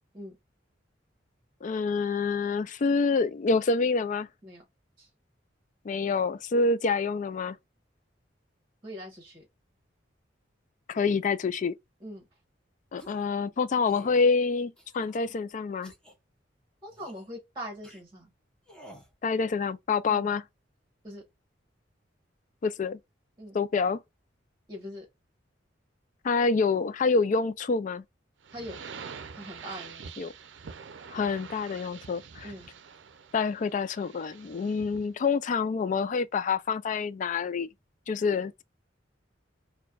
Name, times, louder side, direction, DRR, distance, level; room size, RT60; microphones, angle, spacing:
voice 1, 1.6-4.3 5.8-7.6 10.9-11.7 12.9-15.9 19.2-20.4 22.6-23.0 23.5-24.0 26.2-28.0 30.2-30.3 31.1-32.5 33.3-37.7 38.1-38.6, left 4 dB, 45° left, 0.4 m, -27 dB
voice 2, 8.8-9.5 12.0-12.2 16.8-18.3 20.1-20.3 21.0-21.2 23.4-23.6 24.7-25.1 28.5-28.8 29.3-30.3 32.4-32.7, equal, 25° right, 1.2 m, -42 dB
sound 1, 13.0-13.3 13.8-14.2 14.8-15.3 15.8-16.1 16.9-17.3 17.8-18.0 18.7-19.1, right 1 dB, 5° left, 1.0 m, -51 dB
sound 2, 28.4-35.1, right 6 dB, 80° right, 0.5 m, -46 dB
4.4 x 2.2 x 2.3 m
head